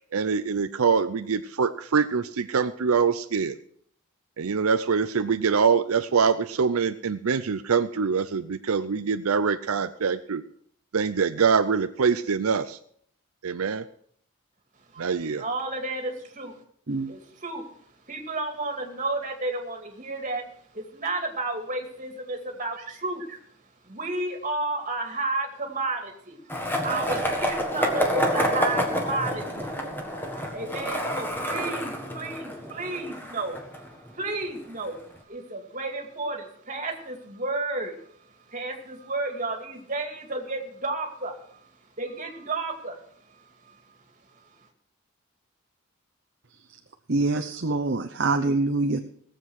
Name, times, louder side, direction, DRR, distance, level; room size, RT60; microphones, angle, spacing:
voice 1, 0.1-3.6 4.4-10.4 10.9-12.8 13.4-13.9 15.0-15.4, right 5 dB, 85° right, 10 dB, 0.6 m, -24 dB
voice 2, 14.7-16.6 17.1-44.7, right 2 dB, 35° right, 3 dB, 2.4 m, -33 dB
Skateboard, 26.5-34.4, equal, 10° left, 1.6 m, -28 dB
voice 3, 47.1-49.0, right 3 dB, 50° right, 5 dB, 0.8 m, -25 dB
18.0 x 7.7 x 6.3 m, 0.64 s
head